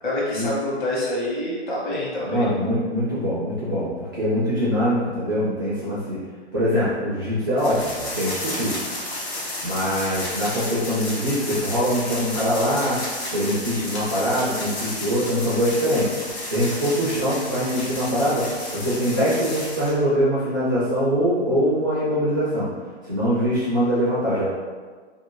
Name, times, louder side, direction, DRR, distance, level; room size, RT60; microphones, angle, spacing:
voice 1, 0.0-2.5 17.0-17.2, left 1 dB, 45° left, -6 dB, 1.1 m, -27 dB
voice 2, 2.2-6.2 6.5-8.8 9.6-13.0 13.3-16.1 16.5-22.7 23.0-24.5, equal, 20° right, -12 dB, 0.4 m, -23 dB
sound 1, 7.6-19.9, left 1 dB, 70° left, 1.0 m, -32 dB
2.6 x 2.3 x 2.9 m, 1.5 s
hypercardioid pair, 165°, 33 cm